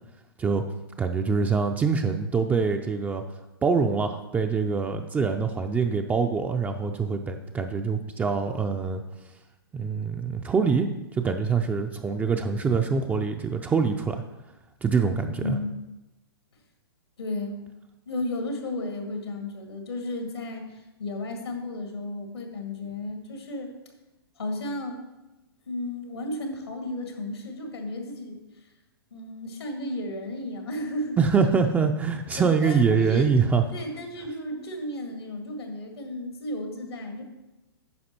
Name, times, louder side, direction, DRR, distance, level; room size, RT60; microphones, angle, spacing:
voice 1, 1.0-3.2 3.6-9.0 9.7-14.2 14.8-15.6 31.2-33.6, right 5 dB, 10° right, 5 dB, 0.4 m, -24 dB
voice 2, 15.3-15.9 17.2-17.6 18.1-23.7 24.4-25.0 25.7-28.4 29.1-31.2 32.4-33.3 33.7-37.2, left 1 dB, 90° left, 4 dB, 2.0 m, -33 dB
9.7 x 5.8 x 4.3 m, 1.0 s
hypercardioid pair, 130°, 13 cm